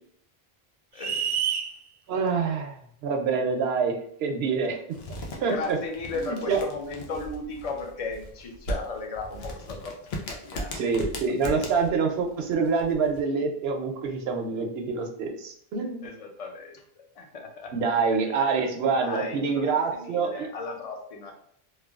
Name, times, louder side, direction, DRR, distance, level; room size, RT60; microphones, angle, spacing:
voice 1, 0.9-1.3 5.4-10.8 16.0-17.7 18.3-18.5 18.9-21.3, left 3 dB, 45° left, 2 dB, 0.5 m, -36 dB
sound 1, 1.0-1.7, right 8 dB, 50° right, 0.4 m, -27 dB
voice 2, 2.1-3.9 4.2-4.8 5.4-5.8 6.2-6.6 10.7-16.0 17.7-20.5, right 5 dB, 80° right, 2 dB, 0.8 m, -26 dB
sound 2, 4.9-13.2, equal, 85° left, 0.9 m, -38 dB
3.1 x 2.2 x 2.3 m, 0.67 s
omnidirectional pair, 1.0 m